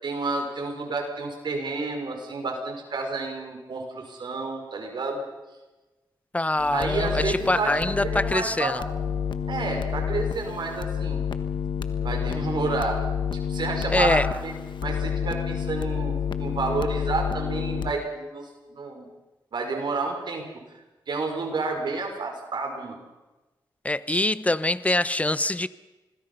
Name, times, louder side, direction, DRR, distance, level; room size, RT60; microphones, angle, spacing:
voice 1, 0.0-5.2 6.7-8.8 9.5-11.2 12.0-13.0 13.3-14.5 14.8-19.1 19.5-20.5 20.7-23.0, right 3 dB, 65° right, 3 dB, 5.5 m, -30 dB
voice 2, 6.3-8.8 13.9-14.3 23.8-25.7, left 2 dB, 15° left, 16 dB, 1.0 m, -24 dB
sound 1, 6.6-17.9, left 7 dB, 70° left, 1.4 m, -29 dB
26.5 x 20.5 x 5.6 m, 1.1 s
cardioid pair, 65°, 8 cm